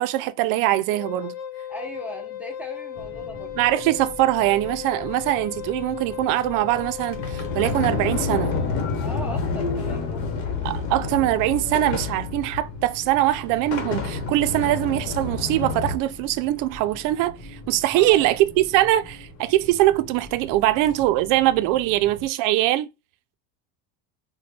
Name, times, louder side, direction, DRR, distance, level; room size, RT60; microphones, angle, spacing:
voice 1, 0.0-1.3 3.6-8.6 10.6-22.9, right 15 dB, 60° right, 0.5 m, -22 dB
Wind instrument woodwind instrument, 0.9-8.7, left 10 dB, 90° left, 0.9 m, -36 dB
voice 2, 1.7-3.5 9.0-10.2 17.9-18.4, equal, 5° right, 0.4 m, -37 dB
sound 1, 2.9-22.3, left 1 dB, 45° left, 1.7 m, -43 dB
Sliding door, 6.7-16.0, left 4 dB, 65° left, 1.2 m, -29 dB
4.1 x 2.2 x 3.3 m
cardioid pair, 140°, 37 cm